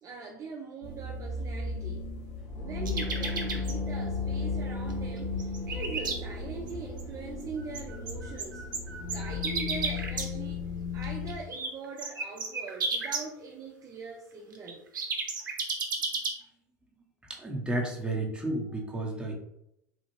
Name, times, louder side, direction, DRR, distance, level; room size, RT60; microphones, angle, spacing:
voice 1, 0.0-2.1 2.6-8.7 9.0-10.7 10.9-14.8, right 5 dB, 30° right, -1 dB, 0.5 m, -42 dB
sound 1, 0.8-11.4, left 4 dB, 60° left, 1.0 m, -35 dB
sound 2, 2.9-3.7 4.9-5.0 5.2-6.2 6.7-6.8 7.0-7.1 7.4-10.3 11.0-11.7 12.0-13.2 14.5-16.3, right 4 dB, 90° right, 0.6 m, -33 dB
voice 2, 17.3-19.3, right 1 dB, 10° right, -1 dB, 0.8 m, -32 dB
3.4 x 2.3 x 3.1 m, 0.80 s
hypercardioid pair, 85°, 10 cm